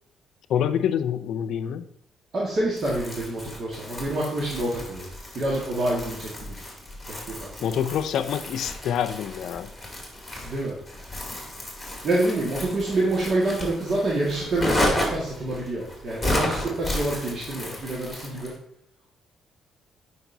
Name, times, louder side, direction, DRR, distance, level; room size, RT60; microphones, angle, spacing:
voice 1, 0.5-1.9 7.6-9.7, left 9 dB, 75° left, 11 dB, 0.5 m, -26 dB
voice 2, 2.3-5.0 5.4-6.6 7.1-7.6 10.4-10.7 12.0-18.5, right 1 dB, 50° right, -5 dB, 1.8 m, -27 dB
Crumpling crinkling, 2.8-18.6, left 1 dB, 5° left, 2.5 m, -33 dB
9.0 x 5.3 x 2.7 m, 0.69 s
cardioid pair, 90°, 0 cm